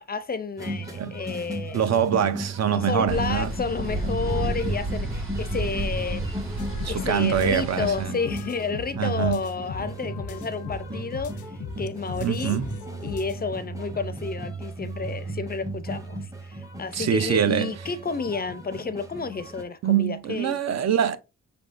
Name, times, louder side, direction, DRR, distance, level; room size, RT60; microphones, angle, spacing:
voice 1, 0.0-2.0 2.7-6.2 6.9-11.3 11.8-12.6 13.0-20.6, left 4 dB, 35° left, 0.4 m, -31 dB
sound 1, 0.6-19.6, right 1 dB, 10° right, 0.7 m, -36 dB
voice 2, 1.7-3.5 6.8-8.1 9.0-9.4 12.2-12.7 16.9-17.7 19.8-21.2, right 9 dB, 60° right, 0.5 m, -24 dB
sound 2, 3.1-8.0, right 1 dB, 45° right, 1.7 m, -31 dB
sound 3, 6.6-13.4, left 8 dB, 90° left, 0.5 m, -40 dB
5.7 x 3.5 x 2.5 m
wide cardioid pair, 120°, 29 cm